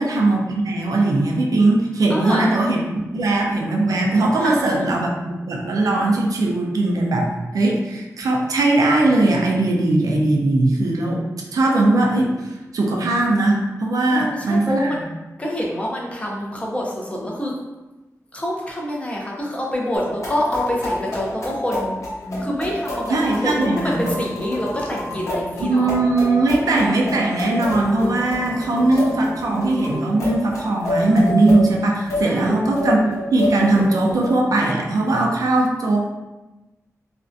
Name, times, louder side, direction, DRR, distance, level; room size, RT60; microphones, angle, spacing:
voice 1, 0.0-11.2 11.5-14.9 23.1-24.1 25.6-36.1, right 2 dB, 90° right, 0 dB, 0.4 m, -19 dB
voice 2, 2.1-2.5 4.4-5.0 14.1-15.0 15.4-17.5 18.3-22.0 22.4-25.9 32.3-32.6, left 1 dB, 20° left, -2 dB, 0.4 m, -26 dB
sound 1, 19.9-34.3, left 1 dB, 60° left, 0.8 m, -28 dB
2.5 x 2.1 x 2.5 m, 1.1 s
wide cardioid pair, 135°, 6 cm